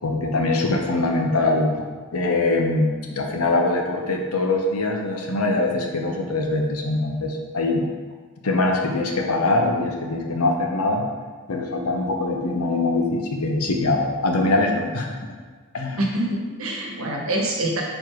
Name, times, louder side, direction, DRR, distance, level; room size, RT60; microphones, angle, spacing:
voice 1, 0.0-7.8 8.4-11.0 11.5-15.3 15.7-16.0, left 2 dB, 85° left, 2 dB, 0.9 m, -23 dB
voice 2, 16.0-17.8, right 1 dB, 70° right, 0 dB, 1.1 m, -25 dB
4.5 x 4.4 x 4.7 m, 1.4 s
head